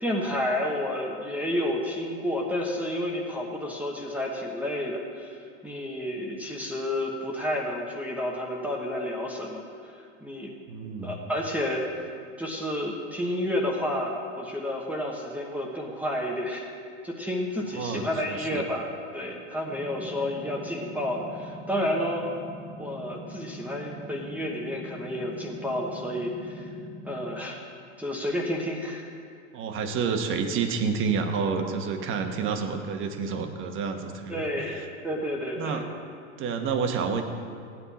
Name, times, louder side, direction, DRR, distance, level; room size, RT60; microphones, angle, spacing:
voice 1, 0.0-5.4 5.6-10.5 11.0-11.9 12.4-16.7 17.0-22.2 22.8-26.6 27.0-27.6 28.0-29.0 34.3-35.8, left 1 dB, 5° right, -1 dB, 1.0 m, -30 dB
voice 2, 10.7-11.1 17.7-18.6 29.5-34.9 35.6-35.8 36.4-37.2, right 5 dB, 30° right, 5 dB, 1.1 m, -29 dB
sound 1, 19.7-27.4, equal, 15° left, 2.4 m, -43 dB
16.0 x 9.5 x 4.2 m, 2.3 s
supercardioid pair, 130°, 38 cm